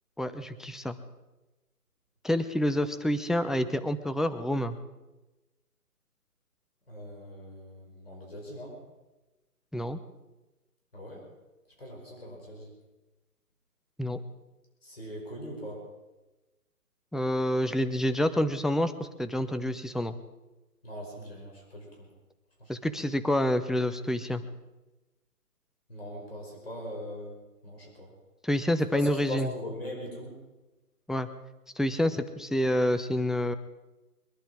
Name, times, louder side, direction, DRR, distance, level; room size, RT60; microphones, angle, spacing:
voice 1, 0.2-1.0 2.2-4.8 9.7-10.0 14.0-14.2 17.1-20.1 22.7-24.4 28.4-29.5 31.1-31.3 31.8-33.6, left 1 dB, ahead, 11 dB, 0.4 m, -28 dB
voice 2, 6.9-8.8 10.9-11.2 11.8-12.7 14.8-15.8 20.8-22.1 22.6-22.8 25.9-27.3 27.6-28.1 28.9-30.4, equal, 40° left, -1 dB, 5.6 m, -40 dB
23.0 x 11.0 x 4.9 m, 1.1 s
figure-of-eight pair, 175°, 47 cm